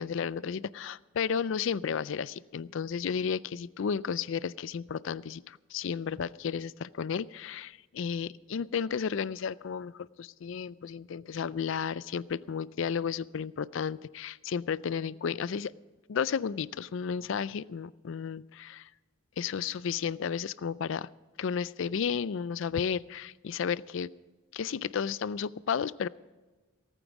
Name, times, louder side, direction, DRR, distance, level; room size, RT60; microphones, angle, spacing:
voice 1, 0.0-15.7 16.1-18.9 19.4-21.1 21.4-24.1 24.5-26.1, left 7 dB, 60° left, 20 dB, 0.4 m, -33 dB
18.0 x 9.2 x 6.0 m, 1.3 s
head